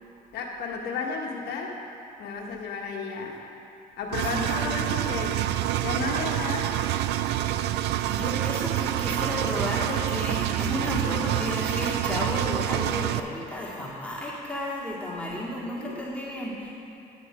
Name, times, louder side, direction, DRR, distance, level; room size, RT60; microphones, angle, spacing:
voice 1, 0.3-1.8 2.2-3.5 4.0-5.5 5.8-6.7 15.8-16.0, left 4 dB, 75° left, 0 dB, 1.5 m, -33 dB
Engine, 4.1-13.2, right 13 dB, 80° right, 0.4 m, -27 dB
voice 2, 4.2-4.7 8.1-16.7, left 1 dB, 5° left, -8 dB, 2.2 m, -32 dB
9.8 x 8.2 x 5.1 m, 2.8 s
cardioid pair, 110°, 17 cm